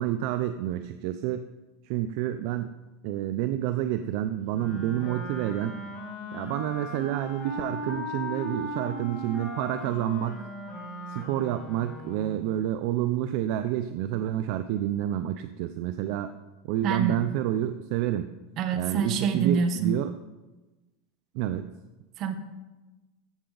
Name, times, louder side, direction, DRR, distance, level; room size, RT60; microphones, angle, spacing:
voice 1, 0.0-1.5 1.8-2.7 3.0-5.8 6.3-10.5 11.1-16.3 16.6-18.3 18.7-20.1 21.3-21.7, right 12 dB, 55° right, 9 dB, 0.4 m, -29 dB
Wind instrument woodwind instrument, 4.5-12.4, equal, 25° left, 3.5 m, -37 dB
voice 2, 16.8-17.2 18.6-19.9 22.2-22.3, right 6 dB, 35° right, 7 dB, 1.1 m, -26 dB
14.5 x 7.7 x 3.9 m, 1.1 s
supercardioid pair, 155°, 0 cm